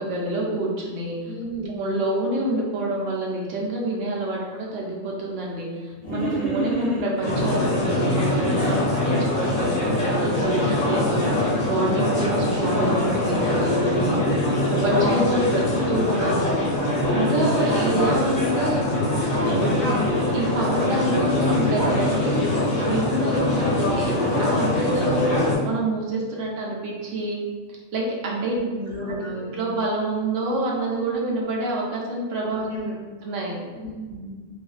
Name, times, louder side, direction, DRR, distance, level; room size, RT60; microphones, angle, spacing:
voice 1, 0.0-1.2 1.7-14.2 14.7-16.5 17.1-19.0 19.4-20.0 20.3-22.4 22.8-25.3 25.6-27.4 27.9-28.5 29.3-32.7 33.2-33.6, right 1 dB, 70° right, -3 dB, 1.0 m, -27 dB
voice 2, 1.2-1.8 10.8-11.2 14.8-15.4 28.4-29.5 32.7-32.9 33.7-34.3, right 1 dB, 15° right, -10 dB, 1.0 m, -33 dB
sound 1, 6.0-7.4 8.0-8.8, right 1 dB, 45° left, 0.6 m, -28 dB
sound 2, 7.2-25.5, left 1 dB, 80° left, 1.1 m, -23 dB
2.6 x 2.4 x 2.3 m, 1.4 s
omnidirectional pair, 1.4 m